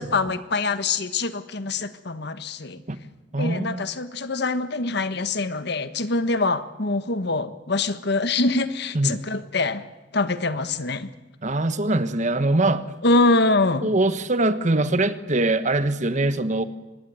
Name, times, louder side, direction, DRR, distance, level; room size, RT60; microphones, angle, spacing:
voice 1, 0.0-2.8 3.4-9.8 10.1-11.1 13.0-13.9, left 3 dB, 65° left, 12 dB, 1.4 m, -24 dB
voice 2, 3.3-3.8 8.9-9.2 11.4-12.8 13.8-16.6, right 2 dB, 40° right, 12 dB, 1.4 m, -23 dB
24.5 x 20.5 x 9.4 m, 1.1 s
head